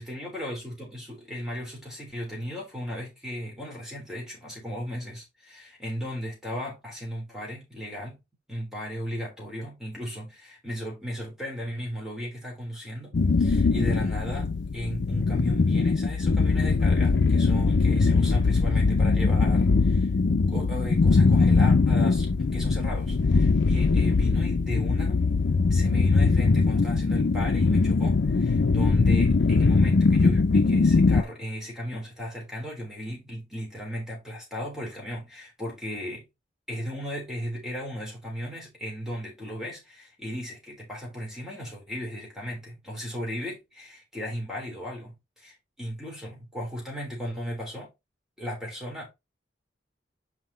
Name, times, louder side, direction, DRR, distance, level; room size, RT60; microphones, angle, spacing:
voice 1, 0.0-8.2 8.5-20.1 20.5-25.2 25.7-36.2 36.7-47.9 48.4-49.1, equal, 5° right, 3.7 m, -36 dB
sound 1, 13.1-31.2, left 4 dB, 75° left, 0.5 m, -21 dB
5.8 x 5.1 x 4.1 m
head